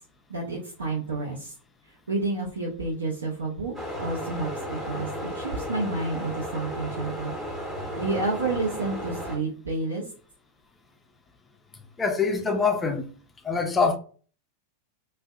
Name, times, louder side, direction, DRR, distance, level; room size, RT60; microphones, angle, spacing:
voice 1, 0.3-1.5 1.8-7.3 8.0-10.1, right 3 dB, 70° right, 0.5 m, -30 dB
sound 1, 3.7-9.4, equal, 10° right, 0.8 m, -34 dB
voice 2, 12.0-13.1 13.4-14.0, left 4 dB, 15° left, 0.4 m, -24 dB
2.5 x 2.1 x 2.3 m
figure-of-eight pair, 90°, 0 cm